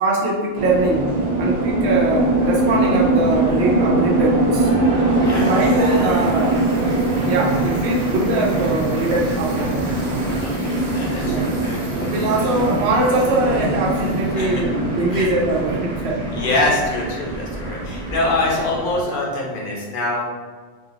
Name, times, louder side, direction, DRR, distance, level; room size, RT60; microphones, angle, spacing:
voice 1, 0.0-1.1 1.4-4.7 5.3-6.6 7.3-9.9 11.3-11.5 11.9-16.4, right 2 dB, 85° right, -3 dB, 0.9 m, -22 dB
sound 1, 0.6-19.0, right 2 dB, 55° right, 0.5 m, -22 dB
Cheering / Applause, 4.4-19.3, right 1 dB, 40° right, 1.0 m, -36 dB
voice 2, 5.1-5.8 10.4-12.5 14.3-14.5 15.1-15.3 16.3-20.2, left 2 dB, 60° left, -3 dB, 0.8 m, -25 dB
2.5 x 2.3 x 3.8 m, 1.5 s
omnidirectional pair, 1.1 m